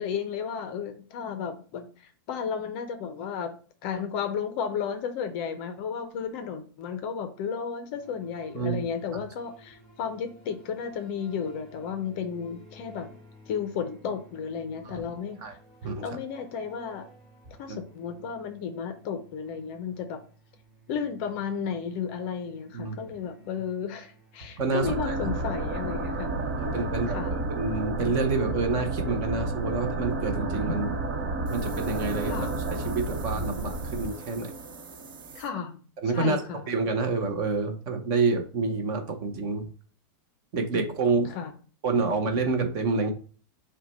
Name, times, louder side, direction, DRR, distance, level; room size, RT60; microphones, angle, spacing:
voice 1, 0.0-3.6 3.8-13.1 13.5-15.4 16.0-17.0 17.6-20.2 20.9-27.3 32.3-32.5 35.3-35.8 36.1-36.6 40.7-40.9 41.3-41.5, left 7 dB, 35° left, 8 dB, 0.5 m, -33 dB
sound 1, 7.9-26.7, equal, ahead, 2.3 m, -55 dB
voice 2, 8.5-8.9 14.8-15.1 15.4-15.5 15.8-16.0 17.7-17.8 22.7-23.0 24.6-25.3 26.6-30.9 31.5-34.5 36.0-36.4 36.7-39.7 40.5-41.3 41.8-43.1, right 3 dB, 30° right, 5 dB, 0.6 m, -28 dB
sound 2, 24.8-35.4, right 2 dB, 50° right, 1.1 m, -31 dB
sound 3, 31.5-35.5, right 6 dB, 70° right, 0.8 m, -48 dB
5.8 x 2.2 x 4.0 m, 0.40 s
supercardioid pair, 175°, 12 cm